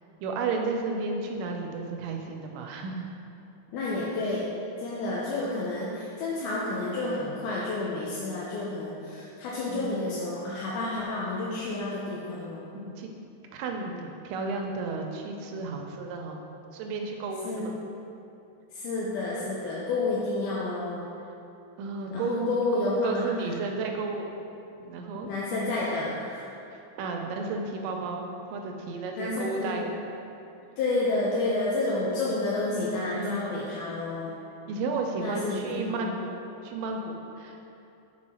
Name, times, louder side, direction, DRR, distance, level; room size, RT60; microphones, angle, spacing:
voice 1, 0.2-3.1 9.7-9.9 12.7-13.1 13.5-16.4 16.7-17.7 21.8-24.3 24.8-25.3 26.7-29.9 33.1-33.8 34.7-37.7, right 3 dB, 85° right, 2 dB, 2.3 m, -33 dB
voice 2, 3.7-4.5 4.8-12.7 17.4-17.7 18.7-21.1 22.1-23.3 25.2-26.5 29.2-29.8 30.8-34.4 35.2-36.1, left 2 dB, 80° left, -6 dB, 2.1 m, -30 dB
6.3 x 4.6 x 4.2 m, 2.7 s
omnidirectional pair, 3.8 m